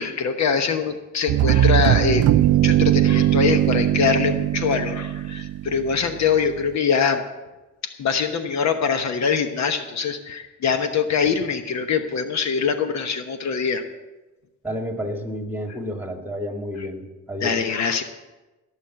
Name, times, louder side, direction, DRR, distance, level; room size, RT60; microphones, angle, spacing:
voice 1, 0.0-7.2 7.8-13.8 17.4-18.0, left 6 dB, 65° left, 8 dB, 1.1 m, -23 dB
sound 1, 1.3-6.1, right 13 dB, 55° right, 0.4 m, -19 dB
voice 2, 14.6-17.6, equal, 5° right, 3 dB, 2.1 m, -30 dB
17.0 x 6.5 x 7.6 m, 1.1 s
cardioid pair, 90°, 30 cm